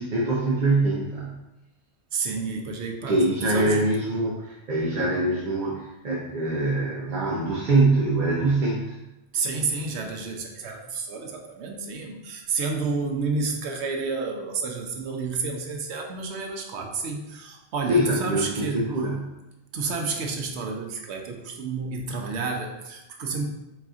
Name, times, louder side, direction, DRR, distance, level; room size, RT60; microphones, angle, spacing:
voice 1, 0.0-1.3 3.1-9.0 17.9-19.3, right 2 dB, 50° right, -4 dB, 0.7 m, -24 dB
voice 2, 2.1-3.8 9.3-18.9 19.7-23.4, right 4 dB, 75° right, 3 dB, 0.9 m, -30 dB
4.1 x 3.7 x 2.4 m, 0.94 s
omnidirectional pair, 1.2 m